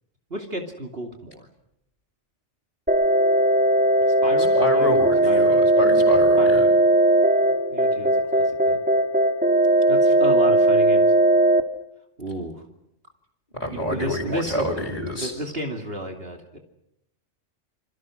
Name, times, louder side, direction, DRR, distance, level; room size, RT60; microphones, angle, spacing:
voice 1, 0.3-1.5 4.2-5.0 5.3-5.6 6.4-6.7 7.7-8.8 9.9-11.1 12.2-12.6 13.9-14.9 15.2-16.6, right 1 dB, 55° right, 3 dB, 2.9 m, -32 dB
sound 1, 2.9-11.6, right 1 dB, 5° right, 2.4 m, -18 dB
voice 2, 4.4-6.7 13.6-15.3, equal, 30° left, -3 dB, 5.2 m, -27 dB
28.5 x 25.5 x 6.4 m, 0.79 s
omnidirectional pair, 1.3 m